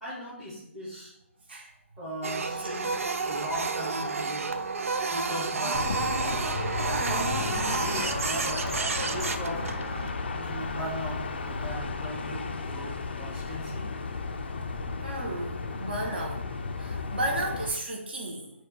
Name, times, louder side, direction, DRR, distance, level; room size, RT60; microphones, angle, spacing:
voice 1, 0.0-1.1 2.0-3.0 3.2-4.6 5.1-6.4 6.9-8.7 9.0-9.7 10.3-13.9, equal, ahead, -9 dB, 0.7 m, -38 dB
Printer, 2.2-10.1, right 4 dB, 90° right, 0.4 m, -30 dB
sound 1, 5.7-17.7, left 4 dB, 50° left, 0.4 m, -34 dB
voice 2, 15.0-16.4 16.8-18.5, right 1 dB, 50° right, 1 dB, 0.9 m, -33 dB
4.6 x 2.3 x 4.7 m, 0.78 s
hypercardioid pair, 175°, 7 cm